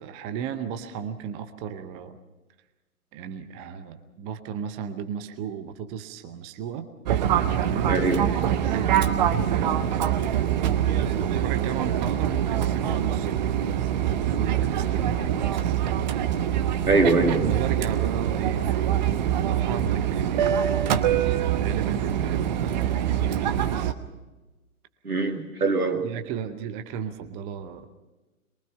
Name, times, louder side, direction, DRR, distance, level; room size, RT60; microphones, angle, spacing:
voice 1, 0.0-2.2 3.1-6.9 7.6-8.0 8.5-10.1 10.9-13.5 13.9-15.8 17.4-21.3 21.5-23.9 25.7-27.9, right 7 dB, 15° right, 9 dB, 0.7 m, -35 dB
Fixed-wing aircraft airplane, 7.1-23.9, right 10 dB, 30° right, 1.0 m, -24 dB
voice 2, 7.9-8.2 8.9-9.0 15.0-15.1 16.9-17.5 25.0-26.1, right 3 dB, 85° right, 4 dB, 2.8 m, -23 dB
23.5 x 23.0 x 5.6 m, 1.1 s
figure-of-eight pair, 125°, 43 cm